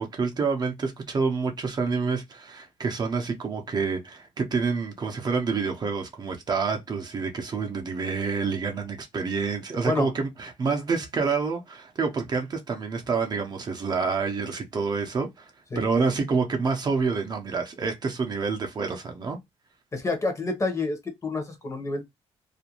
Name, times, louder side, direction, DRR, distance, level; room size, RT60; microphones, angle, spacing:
voice 1, 0.0-19.4, right 4 dB, 35° right, 0.5 m, -28 dB
voice 2, 19.9-22.0, left 2 dB, 25° left, 0.8 m, -28 dB
2.4 x 2.2 x 2.8 m
cardioid pair, 115°, 12 cm